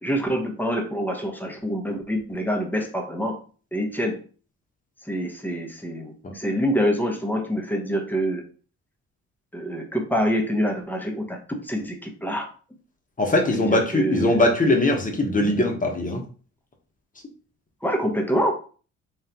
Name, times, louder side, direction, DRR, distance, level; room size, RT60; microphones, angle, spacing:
voice 1, 0.0-3.4 3.7-4.2 5.1-8.4 9.5-12.5 13.4-14.4 17.8-18.5, equal, 5° left, 3 dB, 1.0 m, -26 dB
voice 2, 13.2-16.2, left 1 dB, 25° left, 2 dB, 1.1 m, -21 dB
3.7 x 3.2 x 2.9 m, 0.38 s
cardioid pair, 90°, 30 cm